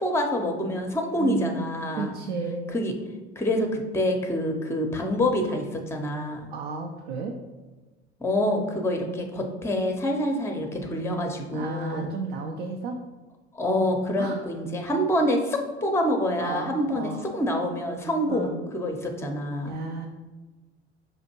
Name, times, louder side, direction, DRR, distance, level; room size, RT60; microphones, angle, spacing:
voice 1, 0.0-2.1 2.7-2.9 3.4-6.5 8.2-12.1 13.5-19.8, left 1 dB, 10° left, 3 dB, 0.6 m, -26 dB
voice 2, 1.2-1.6 2.0-2.8 6.5-7.3 11.5-13.0 14.2-14.4 16.4-17.2 18.3-18.6 19.6-20.1, right 4 dB, 65° right, 2 dB, 0.5 m, -33 dB
5.3 x 2.5 x 2.8 m, 1.2 s
figure-of-eight pair, 70°, 33 cm